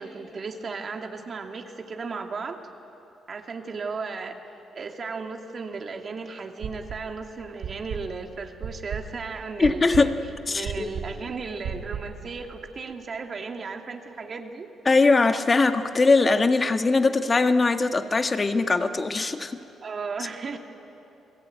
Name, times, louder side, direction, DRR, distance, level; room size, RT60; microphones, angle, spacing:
voice 1, 0.0-2.6 3.3-4.4 4.7-10.1 10.5-14.7 19.8-20.6, right 4 dB, 45° right, 3 dB, 2.3 m, -35 dB
sound 1, 6.6-7.2 7.6-12.2, right 7 dB, 70° right, 2.8 m, -35 dB
voice 2, 9.6-10.2 10.5-10.9 14.8-19.6, left 3 dB, 30° left, 7 dB, 1.5 m, -21 dB
29.5 x 20.0 x 9.3 m, 3.0 s
cardioid pair, 90°, 0 cm